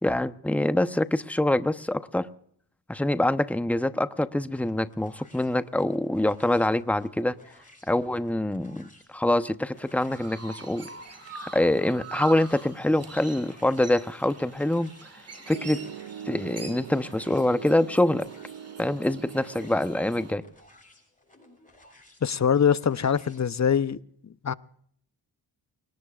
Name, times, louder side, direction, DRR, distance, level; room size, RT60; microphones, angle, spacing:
voice 1, 0.0-2.3 2.9-7.3 7.9-10.9 11.4-14.9 15.5-15.8 16.3-18.3 18.8-20.4, left 1 dB, 5° left, 0.9 m, -25 dB
sound 1, 4.5-23.5, left 1 dB, 20° left, 7.8 m, -56 dB
Chirp tweet, 9.7-20.3, right 4 dB, 35° right, 2.2 m, -44 dB
Piano, 15.5-20.5, right 9 dB, 80° right, 0.7 m, -42 dB
voice 2, 22.2-24.0 24.4-24.5, left 7 dB, 40° left, 0.8 m, -23 dB
29.5 x 18.5 x 2.5 m
cardioid pair, 55°, 43 cm